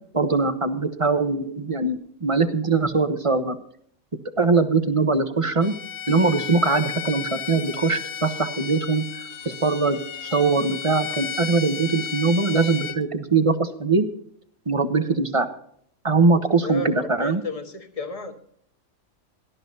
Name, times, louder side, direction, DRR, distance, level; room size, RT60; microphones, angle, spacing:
voice 1, 0.1-3.6 4.4-5.7 6.1-14.1 14.7-15.5 16.0-17.4, right 4 dB, 25° right, 9 dB, 1.0 m, -22 dB
Bowed string instrument, 5.6-13.0, left 8 dB, 65° left, 1.0 m, -34 dB
voice 2, 16.6-18.3, left 3 dB, 25° left, 5 dB, 1.5 m, -32 dB
17.5 x 13.0 x 2.8 m, 0.64 s
omnidirectional pair, 1.5 m